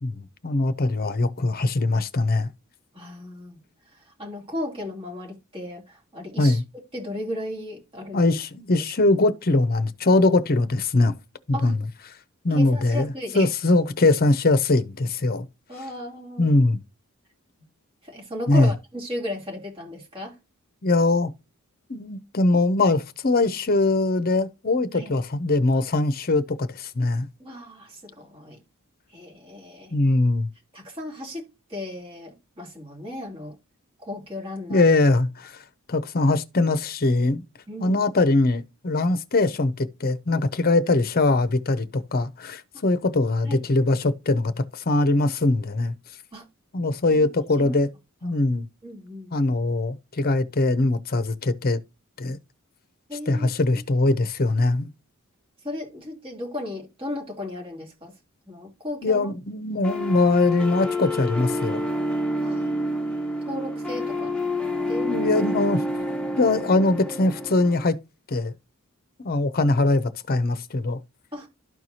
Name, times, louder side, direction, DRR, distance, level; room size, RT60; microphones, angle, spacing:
voice 1, 0.0-2.5 6.4-6.6 8.1-11.1 11.5-11.8 12.4-15.5 16.4-16.8 18.5-18.7 20.8-21.3 21.9-27.3 29.9-30.5 34.7-35.6 35.9-37.4 37.8-45.9 46.7-47.9 48.2-48.7 49.3-51.8 52.2-52.4 53.3-54.9 59.0-61.9 65.0-65.8 66.4-68.0 68.3-68.5 69.2-71.0, left 2 dB, 45° left, 0.7 m, -22 dB
voice 2, 2.9-3.6 3.9-6.6 6.9-8.4 8.8-9.2 11.5-11.7 12.5-13.5 15.7-16.5 18.0-20.4 24.9-25.2 27.4-28.6 29.1-29.9 30.7-33.5 34.0-34.8 37.7-38.0 43.4-43.6 46.3-46.4 47.6-47.8 48.2-48.4 48.8-49.3 53.1-53.5 55.6-58.1 58.5-59.3 62.4-64.3 64.8-65.1 71.3-71.5, left 1 dB, 25° right, 3.0 m, -35 dB
sound 1, 59.8-67.8, left 1 dB, 5° left, 1.1 m, -28 dB
12.5 x 4.6 x 2.8 m
head